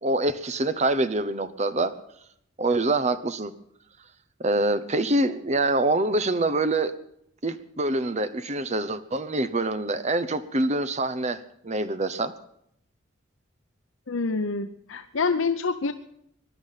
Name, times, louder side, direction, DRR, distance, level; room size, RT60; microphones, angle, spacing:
voice 1, 0.0-1.9 2.6-3.5 4.4-6.9 7.4-11.4 11.6-12.3, right 2 dB, 35° right, 12 dB, 1.0 m, -25 dB
voice 2, 14.1-15.9, left 4 dB, 80° left, 8 dB, 0.8 m, -26 dB
22.0 x 11.5 x 5.7 m, 0.72 s
head